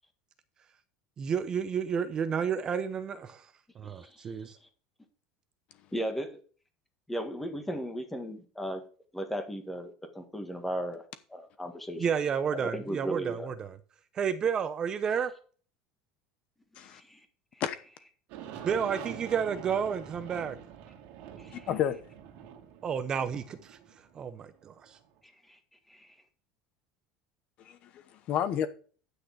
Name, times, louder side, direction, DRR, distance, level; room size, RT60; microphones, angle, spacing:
voice 1, 1.2-3.5 3.8-4.6 12.0-13.8 14.1-15.3 18.6-20.6 22.8-23.8 24.1-25.0, right 7 dB, 25° right, 0.7 m, -31 dB
voice 2, 3.8-4.5 5.9-6.4 7.1-8.8 9.1-11.0 11.3-12.1 12.6-13.5 16.8-17.2 17.5-17.6 21.4-21.7 25.5-25.6 25.9-26.1, right 1 dB, 5° left, 1.6 m, -36 dB
Aircraft, 18.3-25.0, right 9 dB, 60° right, 2.5 m, -45 dB
voice 3, 21.5-22.0 27.6-28.7, left 9 dB, 45° left, 1.0 m, -31 dB
10.0 x 6.5 x 4.8 m
cardioid pair, 150°, 3 cm